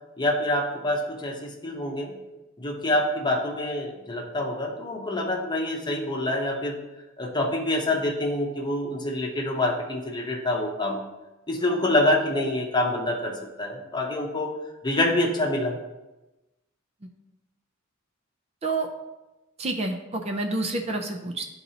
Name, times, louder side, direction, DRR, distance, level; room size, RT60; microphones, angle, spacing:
voice 1, 0.2-2.1 2.6-6.8 7.2-11.0 11.5-14.6 14.8-15.8, left 1 dB, 20° left, 0 dB, 0.9 m, -26 dB
voice 2, 19.6-21.5, right 2 dB, 30° right, 4 dB, 0.5 m, -28 dB
11.5 x 4.0 x 2.8 m, 1.0 s
head